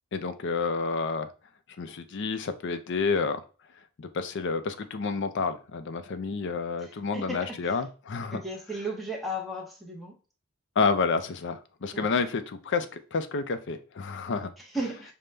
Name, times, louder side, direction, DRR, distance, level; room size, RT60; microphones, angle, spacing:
voice 1, 0.1-1.3 1.8-3.4 4.0-8.4 10.8-14.5, left 4 dB, 55° left, 10 dB, 0.5 m, -29 dB
voice 2, 6.8-7.8 8.3-10.2 11.9-12.1 14.6-15.1, right 1 dB, ahead, -2 dB, 0.7 m, -35 dB
5.2 x 2.1 x 3.2 m, 0.37 s
head